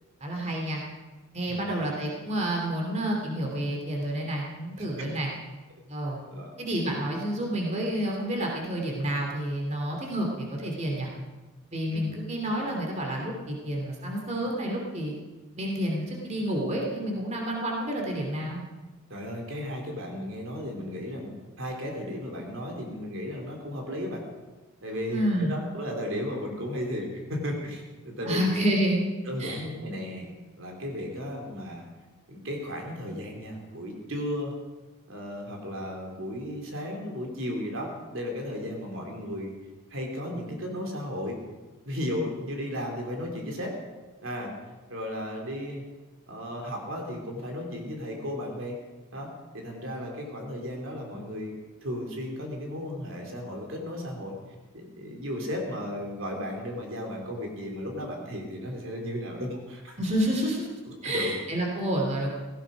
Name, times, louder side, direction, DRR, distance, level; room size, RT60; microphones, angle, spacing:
voice 1, 0.2-0.8 1.3-5.3 5.9-6.2 6.6-11.1 11.7-15.1 15.6-18.6 25.1-25.6 28.2-29.0 29.4-29.6 60.0-60.7 61.0-62.3, right 1 dB, 30° right, 0 dB, 2.8 m, -29 dB
voice 2, 19.1-24.2 24.8-28.4 29.2-31.9 32.3-34.5 35.1-39.5 39.9-41.4 41.8-43.8 44.2-44.5 44.9-45.8 46.3-48.8 49.1-49.3 49.5-54.4 54.7-60.0 60.8-61.3, left 1 dB, 65° right, 1 dB, 3.1 m, -35 dB
17.0 x 16.0 x 5.1 m, 1.2 s
head